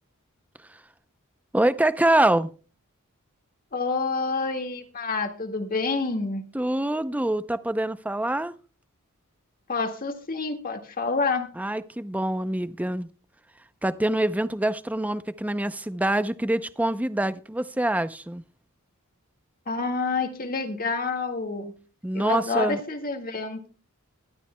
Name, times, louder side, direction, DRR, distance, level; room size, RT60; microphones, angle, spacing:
voice 1, 1.5-2.5 6.5-8.5 11.6-13.1 13.8-18.4 22.0-22.8, right 1 dB, 5° right, 0.5 m, -25 dB
voice 2, 3.7-6.4 9.7-11.5 19.7-21.7 22.1-23.7, left 4 dB, 40° left, 1.9 m, -28 dB
21.5 x 12.5 x 2.2 m
head